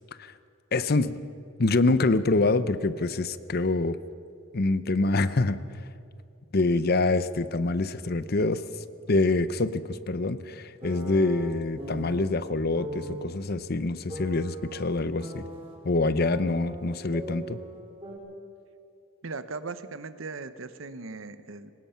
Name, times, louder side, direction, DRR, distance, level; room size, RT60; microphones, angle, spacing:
voice 1, 0.7-1.2 1.6-4.0 4.5-5.6 6.5-8.6 9.1-15.5 15.8-17.6, left 2 dB, 50° left, 14 dB, 0.7 m, -25 dB
sound 1, 10.8-12.3 12.7-13.2 14.1-15.7 16.2-17.8 18.0-18.2, equal, 30° right, 4.4 m, -39 dB
voice 2, 19.2-21.7, right 3 dB, 75° right, 12 dB, 1.0 m, -38 dB
23.0 x 19.5 x 5.7 m, 2.6 s
head